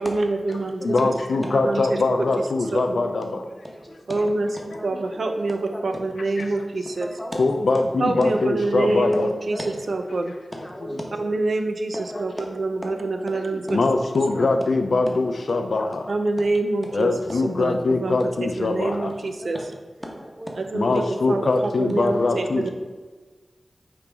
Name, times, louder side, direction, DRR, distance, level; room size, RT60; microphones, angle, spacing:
voice 1, 0.0-1.0 1.5-2.2 2.7-2.9 4.1-4.5 4.8-7.1 8.0-10.3 11.2-13.8 14.4-14.5 16.1-17.1 17.6-19.6 20.7-22.7, right 2 dB, 85° right, 0.4 m, -26 dB
voice 2, 0.8-3.5 6.4-6.5 7.4-9.3 13.7-16.1 16.9-19.1 20.7-22.7, left 3 dB, 85° left, 0.4 m, -22 dB
voice 3, 3.6-4.2 4.8-4.9 5.5-6.0 7.0-7.4 9.5-9.6 10.5-11.2 11.9-12.4 13.0-13.1 13.9-14.0 15.5-15.6 17.3-17.4 19.5-19.6 20.0-20.7, equal, 10° left, 1.0 m, -36 dB
5.0 x 3.1 x 3.4 m
wide cardioid pair, 50°, 0 cm